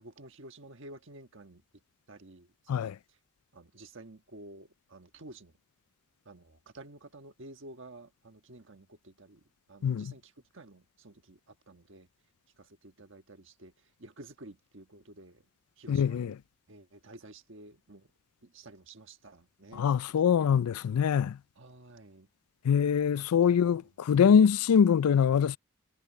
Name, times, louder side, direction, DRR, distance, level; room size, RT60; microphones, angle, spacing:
voice 1, 0.0-1.6 2.1-2.9 3.5-5.5 6.2-9.4 9.7-12.1 12.6-13.7 14.0-15.4 15.8-16.4 16.7-18.1 18.4-20.4 21.6-22.3 23.1-23.8 24.2-24.3, right 2 dB, 55° right, 1.5 m, -51 dB
voice 2, 9.8-10.1 15.9-16.4 19.7-21.4 22.6-25.6, left 7 dB, 90° left, 0.4 m, -24 dB
head